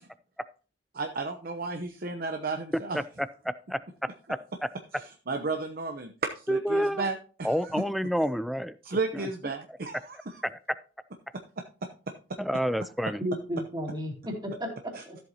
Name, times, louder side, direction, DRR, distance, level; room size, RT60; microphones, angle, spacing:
voice 1, 0.9-3.0 4.9-7.5 8.8-10.4 14.9-15.2, right 3 dB, 55° right, 5 dB, 0.8 m, -33 dB
voice 2, 2.9-3.8 4.3-4.4 6.5-7.1 7.4-8.8 10.4-10.6 12.4-13.2, equal, ahead, 14 dB, 0.4 m, -29 dB
voice 3, 13.2-15.2, equal, 25° right, 0 dB, 2.6 m, -34 dB
13.5 x 7.8 x 2.8 m, 0.38 s
head